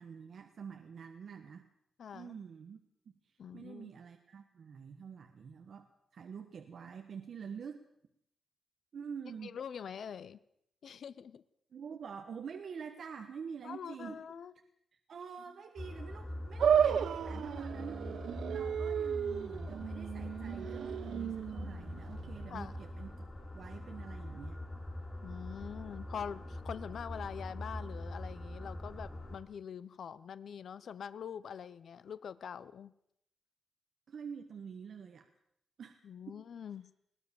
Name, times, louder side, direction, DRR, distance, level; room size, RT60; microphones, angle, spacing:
voice 1, 0.0-1.7 2.1-2.8 3.2-7.8 8.9-9.6 11.7-14.2 14.9-18.0 18.5-24.6 34.1-35.3 35.8-36.0 36.3-36.4, right 6 dB, 55° right, 6 dB, 1.4 m, -47 dB
voice 2, 2.0-2.3 3.4-3.9 9.4-10.4 10.8-11.4 13.6-14.5 22.5-22.7 25.2-32.9 36.0-36.9, left 7 dB, 60° left, 15 dB, 0.7 m, -44 dB
sound 1, 15.8-29.4, left 1 dB, 15° left, 3.8 m, -43 dB
sound 2, 16.6-23.0, right 8 dB, 75° right, 0.9 m, -33 dB
21.5 x 18.0 x 7.0 m, 0.74 s
wide cardioid pair, 175°, 0 cm